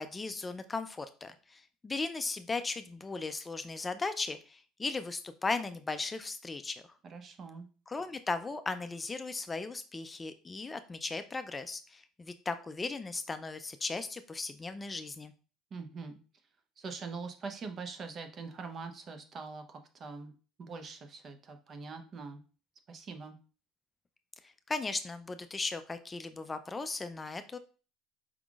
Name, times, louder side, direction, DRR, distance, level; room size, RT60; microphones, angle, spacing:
voice 1, 0.0-6.8 7.9-15.3 24.4-27.6, left 3 dB, 20° left, 10 dB, 0.4 m, -37 dB
voice 2, 7.0-7.7 15.7-16.2 16.8-20.3 20.6-22.4 22.9-23.4, right 4 dB, 45° right, 6 dB, 0.8 m, -43 dB
4.8 x 3.6 x 2.4 m, 0.37 s
hypercardioid pair, 75°, 0 cm